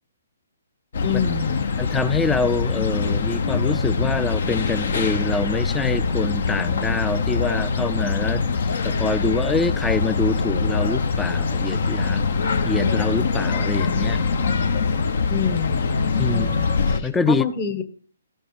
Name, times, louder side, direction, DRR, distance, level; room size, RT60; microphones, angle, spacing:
sound 1, 0.9-17.0, left 4 dB, 65° left, 0.9 m, -23 dB
voice 1, 1.0-1.7 15.3-16.0 16.3-17.8, left 7 dB, 35° left, 1.4 m, -28 dB
voice 2, 1.8-12.3 12.6-14.2 16.2-16.5 17.0-17.4, left 3 dB, 10° left, 0.4 m, -25 dB
14.0 x 5.4 x 4.9 m
hypercardioid pair, 135°, 0 cm